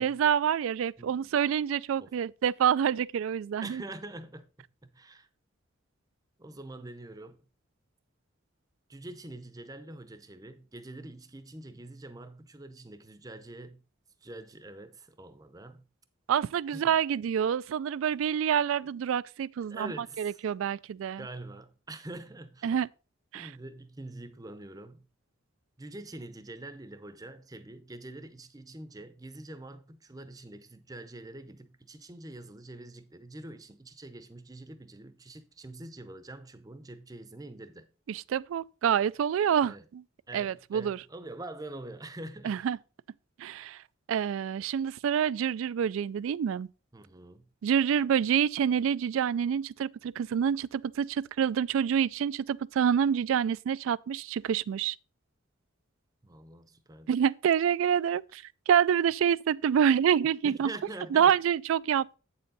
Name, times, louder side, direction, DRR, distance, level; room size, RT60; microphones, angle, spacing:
voice 1, 0.0-3.8 16.3-19.9 20.2-21.2 22.6-22.9 23.3-23.5 38.1-40.0 40.3-41.0 42.4-42.8 43.4-43.8 44.1-46.7 47.6-55.0 57.1-60.7 61.1-62.2, right 8 dB, 75° right, 0.3 m, -27 dB
voice 2, 1.0-1.3 2.0-2.1 3.6-4.4 4.8-5.3 6.4-7.4 8.9-13.8 14.2-15.8 16.7-17.0 19.7-20.4 21.2-22.7 23.3-25.0 25.8-37.9 39.6-39.9 40.3-42.7 46.9-47.5 56.2-57.1 60.4-61.3, right 2 dB, 15° right, 0.6 m, -45 dB
8.2 x 6.9 x 3.9 m
head